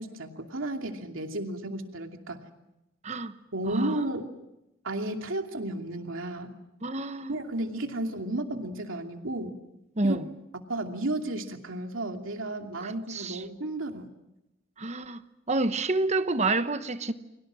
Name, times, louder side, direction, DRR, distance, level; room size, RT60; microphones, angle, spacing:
voice 1, 0.0-2.4 3.5-4.3 4.8-6.5 7.3-9.6 10.0-10.2 10.7-14.1, right 1 dB, 85° right, 2.6 m, -33 dB
voice 2, 3.7-4.0 6.8-7.3 10.0-10.3 12.8-13.4 14.8-15.2 15.5-17.1, right 2 dB, 35° right, 1.1 m, -28 dB
30.0 x 23.0 x 6.3 m
head